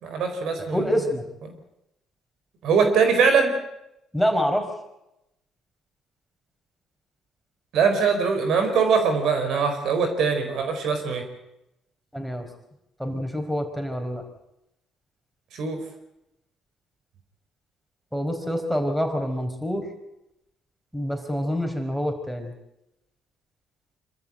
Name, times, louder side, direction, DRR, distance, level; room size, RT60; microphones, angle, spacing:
voice 1, 0.0-0.8 1.4-1.5 2.6-3.5 7.7-11.2 15.5-15.8, right 5 dB, 70° right, 6 dB, 4.3 m, -22 dB
voice 2, 0.7-1.2 4.1-4.7 12.1-12.5 13.0-14.2 18.1-19.9 20.9-22.5, equal, ahead, 5 dB, 4.8 m, -26 dB
25.5 x 13.5 x 8.9 m, 0.88 s
supercardioid pair, 65°, 0 cm